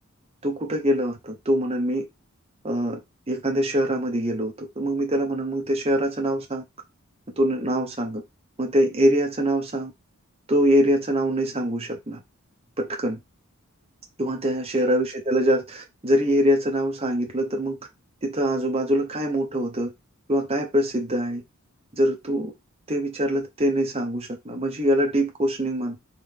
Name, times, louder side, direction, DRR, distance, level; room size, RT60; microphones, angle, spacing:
voice 1, 0.4-2.0 2.6-3.0 3.3-6.6 7.4-8.2 8.6-9.9 10.5-12.2 12.8-13.2 14.2-17.8 18.2-19.9 20.3-21.4 22.0-22.5 22.9-26.0, equal, 25° right, 0.9 m, -24 dB
3.5 x 3.4 x 3.5 m
head